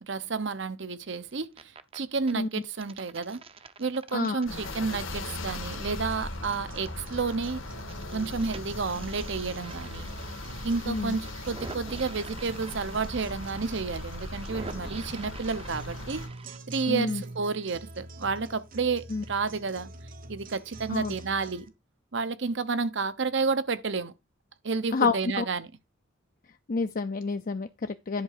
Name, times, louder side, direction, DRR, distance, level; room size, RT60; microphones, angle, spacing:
voice 1, 0.0-3.4 3.8-7.6 8.1-10.1 10.6-16.2 16.7-19.9 20.3-21.7 22.1-24.1 24.6-25.7, right 4 dB, 65° right, 0.8 m, -31 dB
sound 1, 1.3-2.0 2.3-7.4 7.6-16.6, right 3 dB, 30° right, 0.7 m, -47 dB
voice 2, 4.1-4.4 10.9-11.2 16.9-17.2 19.1-19.2 20.9-21.1 24.9-25.4 26.7-28.2, left 4 dB, 45° left, 0.5 m, -29 dB
sound 2, 4.5-16.3, left 2 dB, 80° left, 1.8 m, -39 dB
sound 3, 5.7-21.7, right 1 dB, 45° right, 1.2 m, -45 dB
10.5 x 3.6 x 6.6 m
head